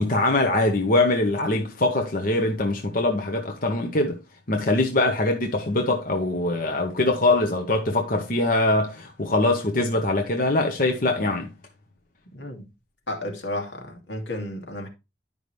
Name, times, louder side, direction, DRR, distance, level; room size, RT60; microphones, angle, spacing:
voice 1, 0.0-4.2 4.5-11.5, left 2 dB, 50° left, 1.0 m, -23 dB
voice 2, 12.3-12.6 13.1-14.9, left 1 dB, 80° left, 2.3 m, -32 dB
11.0 x 5.4 x 3.2 m
head